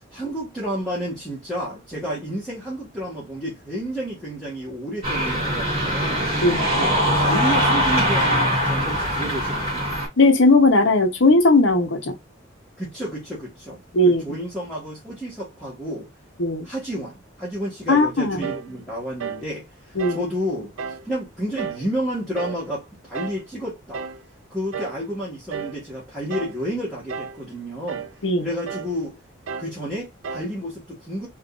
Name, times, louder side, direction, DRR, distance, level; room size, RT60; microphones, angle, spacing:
voice 1, 0.0-6.3 6.7-9.9 12.8-16.1 16.6-24.0 24.5-28.1 28.4-29.2 29.6-31.3, equal, ahead, 1.4 m, -31 dB
sound 1, 5.0-10.1, equal, 30° right, 1.9 m, -22 dB
voice 2, 10.2-12.1 13.9-14.2 16.4-16.7 17.9-18.4 20.0-20.2 28.2-28.5, left 2 dB, 70° left, 0.9 m, -17 dB
sound 2, 18.4-18.7 19.2-19.5 20.0-20.3 20.8-21.1 21.6-21.9 22.3-22.7 23.1-23.4 23.9-24.2 24.7-25.0 25.5-25.8 26.3-26.6 27.1-27.4 27.9-28.2 28.7-29.0 29.5-29.8 30.2-30.6, right 6 dB, 80° right, 0.4 m, -32 dB
3.7 x 2.6 x 2.4 m
head